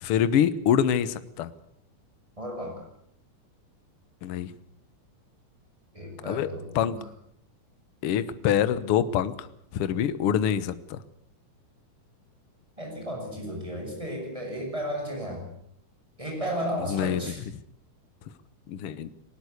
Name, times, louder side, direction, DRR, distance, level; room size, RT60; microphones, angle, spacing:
voice 1, 0.0-1.5 4.2-4.5 6.2-6.5 6.7-7.0 8.0-9.5 9.7-11.0 16.9-17.3 18.7-19.1, left 9 dB, 60° left, 14 dB, 1.6 m, -25 dB
voice 2, 2.4-2.8 5.9-7.0 12.8-15.5 16.2-17.4, equal, 10° right, 0 dB, 7.5 m, -34 dB
20.0 x 19.5 x 8.2 m, 0.71 s
omnidirectional pair, 3.6 m